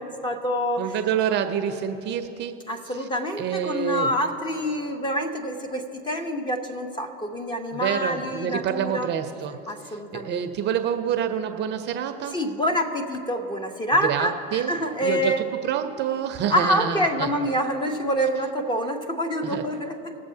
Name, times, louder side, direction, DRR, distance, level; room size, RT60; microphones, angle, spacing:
voice 1, 0.0-0.9 2.7-9.1 9.7-10.4 12.3-15.4 16.5-20.1, equal, 15° left, 5 dB, 0.9 m, -26 dB
voice 2, 0.8-2.6 3.4-4.1 7.7-9.6 9.8-12.4 14.0-14.7 15.0-17.3 19.4-19.6, right 9 dB, 35° right, 7 dB, 0.7 m, -27 dB
21.0 x 7.4 x 2.8 m, 2.9 s
hypercardioid pair, 105°, 29 cm